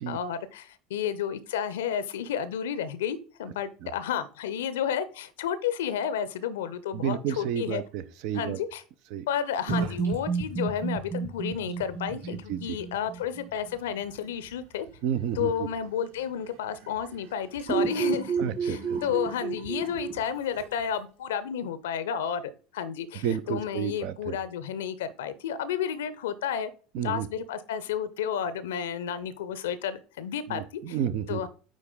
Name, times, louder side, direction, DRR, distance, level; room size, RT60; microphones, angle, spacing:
voice 1, 0.1-7.8 8.3-8.8 9.3-14.9 15.4-18.4 18.6-26.7 27.0-31.0 31.3-31.5, left 8 dB, 65° left, 0.6 m, -31 dB
voice 2, 6.9-8.6 9.1-9.3 12.5-12.6 15.0-15.7 18.4-19.0 23.2-24.4 26.9-27.3 30.5-31.4, right 9 dB, 55° right, 0.6 m, -31 dB
sound 1, 9.6-10.2 10.5-11.1 11.5-21.0, right 6 dB, 85° right, 2.7 m, -44 dB
sound 2, 9.7-13.7 17.7-20.1, right 5 dB, 30° right, 2.1 m, -31 dB
9.1 x 3.6 x 3.8 m
figure-of-eight pair, 70°, 0 cm